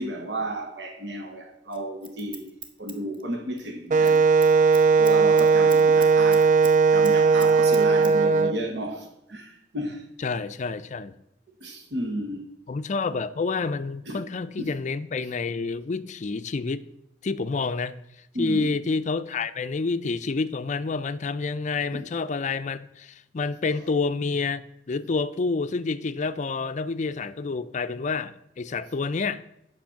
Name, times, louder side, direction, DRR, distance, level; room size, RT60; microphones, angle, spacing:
voice 1, 0.0-4.2 5.0-6.5 6.9-10.1 11.6-12.5 14.1-14.2 14.6-14.7 18.3-18.7 21.9-22.1, right 1 dB, 70° right, 2 dB, 1.3 m, -33 dB
Scissors, 1.7-3.7 3.9-4.2 4.4-6.7 7.0-8.1 8.4-8.5, right 4 dB, 30° right, 1.0 m, -42 dB
Wind instrument woodwind instrument, 3.9-8.5, right 4 dB, 45° right, 0.4 m, -18 dB
voice 2, 10.2-11.1 12.7-16.9 17.2-17.9 18.4-29.4, left 4 dB, 45° left, 13 dB, 0.4 m, -28 dB
8.8 x 6.2 x 5.8 m, 0.82 s
head